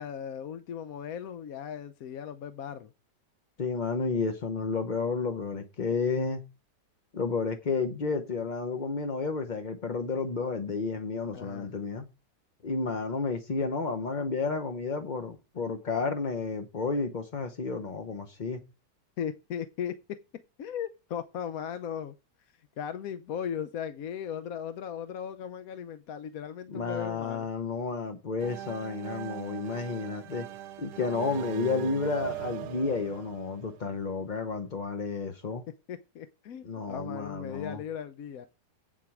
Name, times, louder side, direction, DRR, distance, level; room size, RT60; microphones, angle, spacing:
voice 1, 0.0-2.9 11.3-11.7 19.2-20.2 20.6-27.5 35.9-38.5, left 8 dB, 65° left, 1.0 m, -37 dB
voice 2, 3.6-6.4 7.1-12.0 12.6-18.6 26.7-30.5 30.8-35.6 36.6-37.8, left 4 dB, 40° left, 0.7 m, -31 dB
sound 1, 28.4-34.1, right 13 dB, 75° right, 1.3 m, -40 dB
8.5 x 7.4 x 4.8 m
omnidirectional pair, 1.9 m